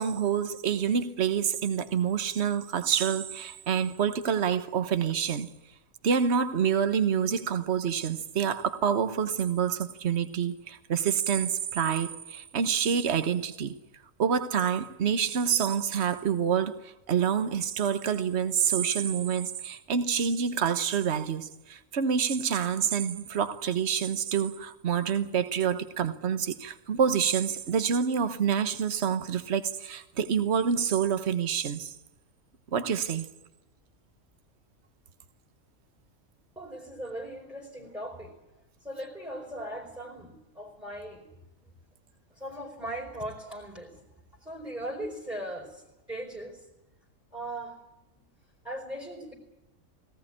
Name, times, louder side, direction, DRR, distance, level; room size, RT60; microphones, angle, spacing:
voice 1, 0.0-5.5 6.0-13.8 14.2-31.9 32.7-33.2, right 7 dB, 55° right, 11 dB, 1.4 m, -27 dB
voice 2, 36.5-38.3 38.8-41.4 42.3-44.0 44.4-46.7 47.3-48.3 48.6-49.3, right 1 dB, 5° right, -1 dB, 4.7 m, -39 dB
19.0 x 18.5 x 9.9 m, 0.94 s
omnidirectional pair, 1.4 m